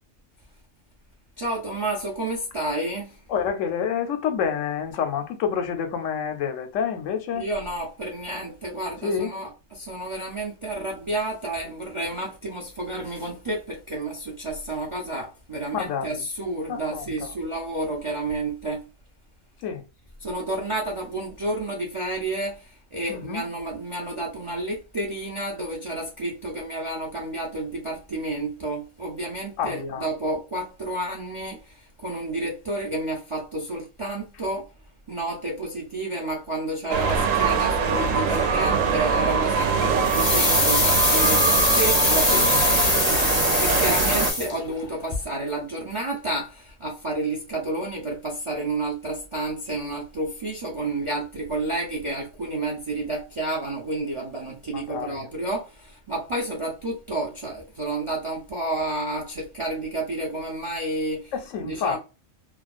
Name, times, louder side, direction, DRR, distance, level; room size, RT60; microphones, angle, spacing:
voice 1, 1.4-3.2 7.3-18.9 20.2-34.7 35.1-42.3 43.2-62.0, right 2 dB, 40° right, 0.4 m, -30 dB
voice 2, 3.3-7.4 9.0-9.3 15.7-16.2 16.7-17.3 19.6-19.8 23.1-23.4 29.6-30.1 42.3-42.5 54.9-55.2 61.3-62.0, left 7 dB, 75° left, 0.9 m, -28 dB
sound 1, 36.9-44.3, right 5 dB, 75° right, 1.0 m, -23 dB
sound 2, 40.0-44.8 45.1-45.2, left 2 dB, 30° left, 0.6 m, -22 dB
2.5 x 2.2 x 2.3 m
omnidirectional pair, 1.4 m